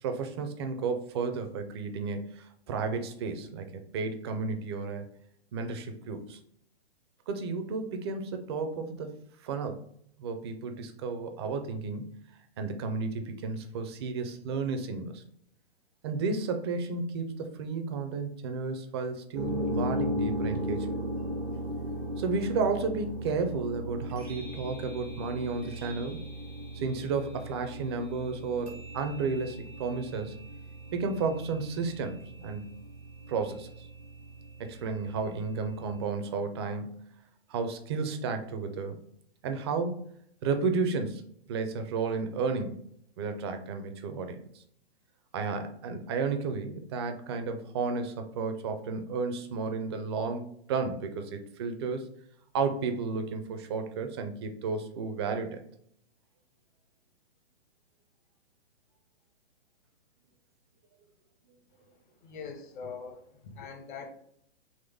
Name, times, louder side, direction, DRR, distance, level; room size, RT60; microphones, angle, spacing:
voice 1, 0.0-5.1 5.5-6.4 7.3-9.2 9.4-9.8 10.2-12.2 12.6-15.2 16.0-21.0 22.2-26.2 26.7-30.4 30.9-32.8 33.3-33.9 34.6-37.1 37.5-39.0 39.4-40.1 40.4-42.8 43.2-44.6 45.3-52.1 52.5-55.6, right 4 dB, 25° right, 6 dB, 0.4 m, -32 dB
sound 1, 19.3-36.0, equal, 90° right, 1.3 m, -37 dB
voice 2, 62.2-64.1, left 5 dB, 50° left, 4 dB, 0.9 m, -42 dB
3.9 x 3.1 x 3.4 m, 0.66 s
hypercardioid pair, 130°, 32 cm